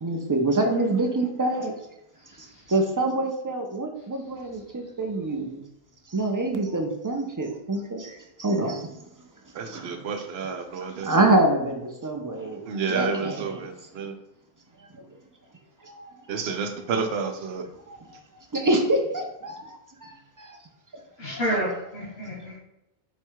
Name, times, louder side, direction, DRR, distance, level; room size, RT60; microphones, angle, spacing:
voice 1, 0.0-1.7 2.4-5.6 6.1-8.9 9.6-10.0 11.0-12.6 12.9-13.7 15.8-16.1 17.9-18.0 18.5-20.6 21.2-21.4, right 2 dB, 30° right, 3 dB, 0.4 m, -26 dB
voice 2, 2.3-2.6 21.2-22.6, equal, 90° left, -7 dB, 1.5 m, -30 dB
voice 3, 9.5-11.1 12.7-14.1 16.3-17.6, right 5 dB, 80° right, 5 dB, 0.9 m, -30 dB
4.8 x 2.2 x 4.5 m, 0.87 s
omnidirectional pair, 1.0 m